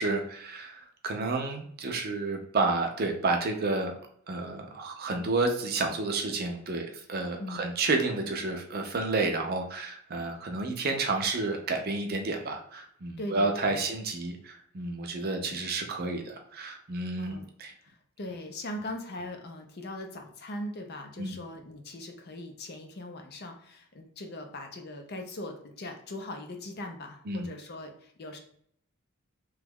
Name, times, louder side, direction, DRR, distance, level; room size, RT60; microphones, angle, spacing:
voice 1, 0.0-3.9 4.3-17.7 21.2-21.4 27.3-27.5, right 3 dB, 45° right, 3 dB, 0.5 m, -30 dB
voice 2, 13.2-13.9 15.5-15.6 17.2-17.5 17.8-28.4, left 1 dB, 45° left, 4 dB, 0.5 m, -40 dB
3.0 x 2.3 x 3.4 m, 0.64 s
head